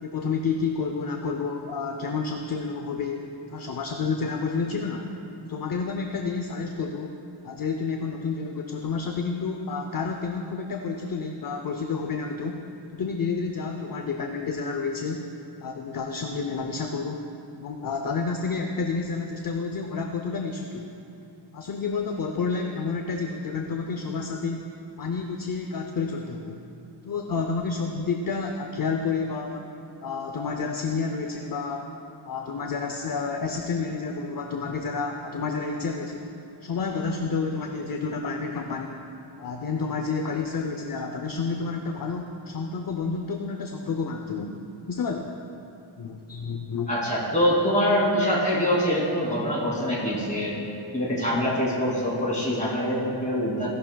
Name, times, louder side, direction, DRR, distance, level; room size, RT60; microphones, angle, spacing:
voice 1, 0.0-5.1 5.4-7.2 7.4-12.6 12.9-15.3 15.6-17.2 17.6-20.9 21.5-24.7 25.0-26.6 27.0-29.7 30.0-31.9 32.2-36.3 36.6-39.0 39.4-44.6 44.9-45.3 46.0-46.9, left 4 dB, 50° left, 3 dB, 0.6 m, -30 dB
voice 2, 46.9-50.5 50.9-53.7, equal, 15° left, -6 dB, 2.6 m, -24 dB
16.0 x 11.5 x 2.3 m, 2.8 s
wide cardioid pair, 145°, 46 cm